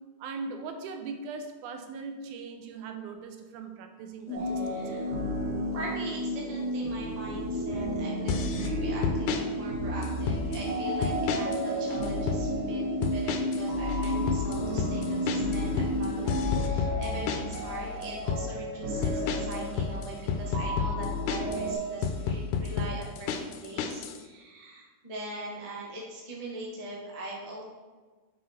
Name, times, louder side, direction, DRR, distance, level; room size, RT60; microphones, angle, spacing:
voice 1, 0.2-5.1, right 4 dB, 80° right, 5 dB, 2.0 m, -40 dB
sound 1, 4.3-16.6, equal, 50° left, 1.8 m, -33 dB
sound 2, 4.3-21.7, equal, 60° right, 2.9 m, -34 dB
voice 2, 4.4-5.2 5.7-12.8 13.1-27.6, right 1 dB, 45° right, -4 dB, 0.4 m, -41 dB
sound 3, 8.3-8.7 9.0-9.4 10.0-10.6 11.0-11.6 11.9-12.4 13.0-13.6 13.9-17.6 18.0-18.4 19.0-21.6 22.0-24.2, left 6 dB, 80° left, 2.1 m, -31 dB
6.1 x 5.8 x 4.3 m, 1.3 s
omnidirectional pair, 3.7 m